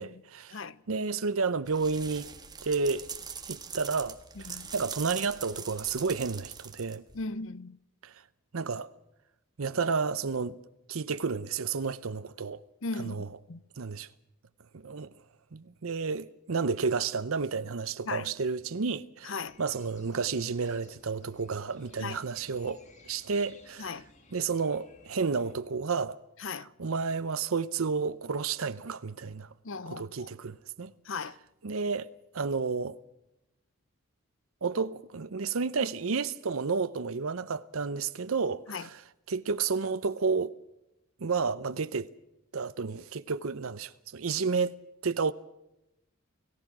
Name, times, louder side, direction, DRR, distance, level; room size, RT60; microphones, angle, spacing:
voice 1, 0.0-2.3 2.6-3.1 3.5-4.2 4.5-7.0 8.0-8.1 8.5-8.9 9.6-10.6 10.9-12.6 13.0-13.4 13.8-14.1 14.7-15.1 15.5-24.0 24.3-29.5 29.9-30.9 31.6-32.1 32.3-33.0 34.6-40.5 41.2-42.1 42.5-44.7 45.0-45.3, right 5 dB, 75° right, 0.7 m, -31 dB
sound 1, 1.7-7.2, right 6 dB, 20° right, 1.6 m, -42 dB
voice 2, 7.1-7.8 12.8-13.6 18.1-18.3 19.2-19.6 22.0-22.2 23.8-24.1 26.4-26.7 29.6-30.3 31.1-31.4 38.7-38.9, left 4 dB, 60° left, 0.7 m, -37 dB
sound 2, 19.4-25.6, left 2 dB, 35° left, 2.4 m, -59 dB
29.5 x 16.5 x 6.1 m
head